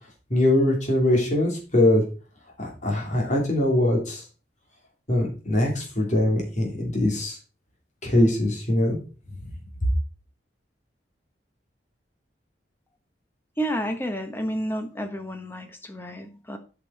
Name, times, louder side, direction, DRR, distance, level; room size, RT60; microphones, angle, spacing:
voice 1, 0.3-2.0 2.6-4.2 5.1-7.4 8.0-9.0, left 1 dB, 40° left, 0 dB, 3.2 m, -22 dB
voice 2, 13.6-16.6, equal, 10° left, 7 dB, 1.2 m, -30 dB
8.1 x 6.1 x 4.8 m, 0.35 s
head